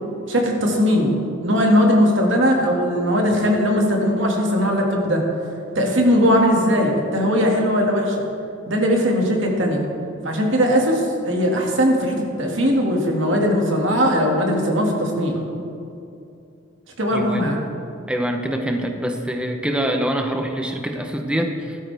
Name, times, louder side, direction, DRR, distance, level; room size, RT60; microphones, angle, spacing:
voice 1, 0.3-1.1 1.4-5.2 5.8-8.2 8.7-9.8 10.2-15.3 17.0-17.6, equal, 65° right, 0 dB, 2.1 m, -19 dB
voice 2, 17.1-17.5 18.1-21.8, equal, 5° right, 3 dB, 0.8 m, -25 dB
15.0 x 13.0 x 3.5 m, 2.6 s
head